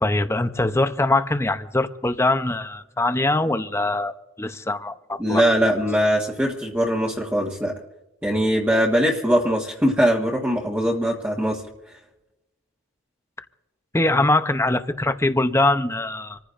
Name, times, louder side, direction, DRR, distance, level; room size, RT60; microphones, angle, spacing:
voice 1, 0.0-4.1 4.4-5.4 13.9-16.4, left 2 dB, 15° left, 0.7 m, -22 dB
voice 2, 5.2-7.7 8.2-11.6, equal, 10° right, 1.5 m, -21 dB
27.0 x 15.0 x 2.6 m
head